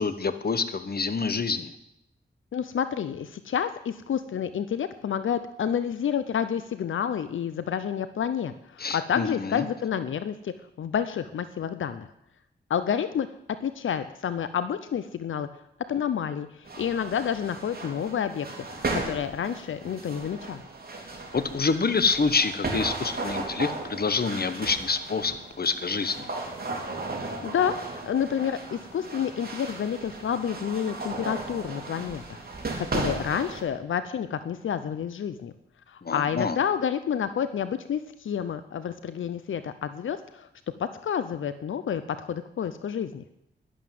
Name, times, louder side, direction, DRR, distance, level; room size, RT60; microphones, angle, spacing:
voice 1, 0.0-1.7 8.8-9.6 21.3-26.3 36.0-36.6, left 4 dB, 50° left, 12 dB, 1.2 m, -27 dB
voice 2, 2.5-12.1 12.7-13.3 13.6-15.5 15.9-18.5 18.9-20.6 27.4-32.4 32.8-35.5 35.9-40.5 40.8-43.2, left 8 dB, 90° left, 12 dB, 0.6 m, -29 dB
sound 1, 16.6-33.6, right 2 dB, 50° right, 3.7 m, -36 dB
11.5 x 11.0 x 7.6 m, 0.80 s
cardioid pair, 60°, 20 cm